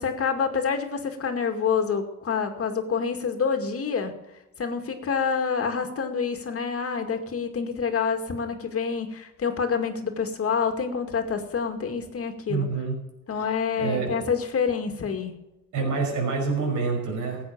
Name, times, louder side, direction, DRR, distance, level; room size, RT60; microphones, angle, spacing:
voice 1, 0.0-4.1 4.6-12.7 13.3-15.3, left 6 dB, 50° left, 5 dB, 2.2 m, -27 dB
voice 2, 12.5-12.9 13.4-13.5 13.8-14.1 15.7-17.4, right 4 dB, 80° right, 1 dB, 5.6 m, -27 dB
15.5 x 8.6 x 7.3 m, 0.97 s
cardioid pair, 90°, 30 cm